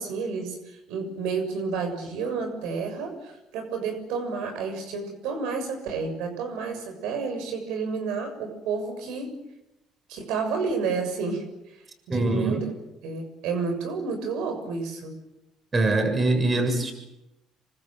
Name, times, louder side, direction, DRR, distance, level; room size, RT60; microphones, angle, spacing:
voice 1, 0.0-9.3 10.1-12.6 13.0-15.1, right 4 dB, 85° right, 6 dB, 6.7 m, -30 dB
voice 2, 12.1-12.7 15.7-16.9, right 2 dB, 30° right, 6 dB, 7.1 m, -23 dB
27.5 x 24.5 x 7.6 m, 0.92 s
cardioid pair, 105°, 0 cm